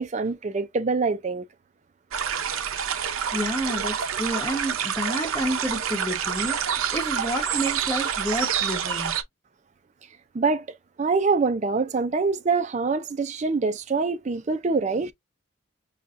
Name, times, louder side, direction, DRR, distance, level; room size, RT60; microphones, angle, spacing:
voice 1, 0.0-1.5 10.3-10.7 11.0-15.1, right 4 dB, 35° right, 0.4 m, -25 dB
sound 1, 2.1-9.2, right 8 dB, 85° right, 0.6 m, -27 dB
voice 2, 3.3-9.1, equal, 15° left, 1.0 m, -30 dB
5.5 x 2.3 x 2.4 m
head